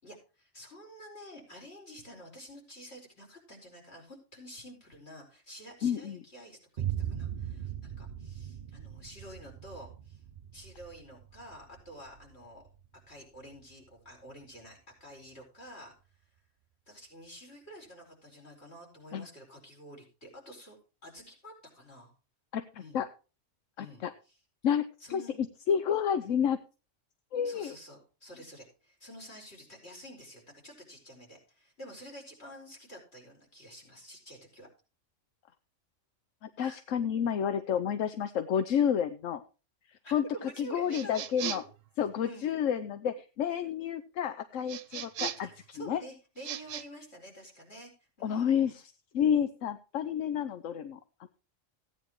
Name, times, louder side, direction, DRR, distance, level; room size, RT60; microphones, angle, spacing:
voice 1, 0.0-10.2 10.5-12.6 13.1-15.9 16.9-22.1 22.8-23.0 23.8-24.0 25.0-25.4 27.4-34.7 36.6-36.8 40.0-41.6 42.2-42.5 45.4-47.9 48.2-48.7, right 1 dB, 55° left, -1 dB, 5.0 m, -49 dB
voice 2, 5.8-6.2 19.1-19.3 22.5-23.1 23.8-24.1 24.6-25.2 25.7-26.6 27.3-27.8 36.4-39.4 39.9-40.2 40.6-41.6 42.0-45.5 45.8-46.0 48.2-48.8 49.1-51.3, left 8 dB, 85° left, 11 dB, 1.1 m, -30 dB
Boom, 6.8-14.6, right 10 dB, 50° right, 0.7 m, -40 dB
sound 1, 40.9-41.8 44.7-45.6 46.4-46.8, right 9 dB, 90° right, 1.1 m, -38 dB
16.0 x 9.6 x 3.1 m, 0.33 s
omnidirectional pair, 1.3 m